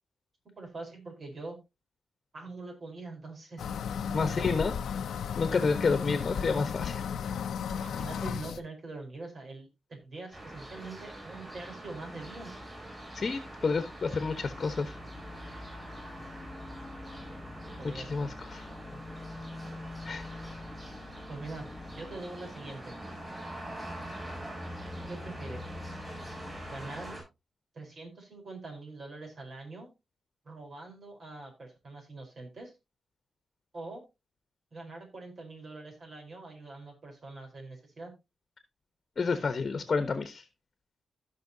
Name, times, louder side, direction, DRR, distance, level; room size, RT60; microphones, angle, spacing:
voice 1, 0.6-1.6 2.3-4.6 7.6-12.6 17.7-18.4 18.7-19.0 21.3-23.0 25.1-25.7 26.7-27.2 27.7-29.9 30.4-32.7 33.7-34.0 34.7-38.1, right 3 dB, 50° right, 2 dB, 4.4 m, -44 dB
sound 1, 3.6-8.6, left 7 dB, 85° left, 0.7 m, -34 dB
voice 2, 4.1-4.7 5.4-7.0 13.1-14.9 17.9-18.7 20.0-20.2 39.2-40.4, left 4 dB, 45° left, 10 dB, 1.2 m, -29 dB
sound 2, 10.3-27.2, equal, 15° right, 7.0 m, -43 dB
sound 3, 14.2-22.2, left 3 dB, 20° left, 1.9 m, -46 dB
16.0 x 5.7 x 2.8 m, 0.25 s
cardioid pair, 95°, 0 cm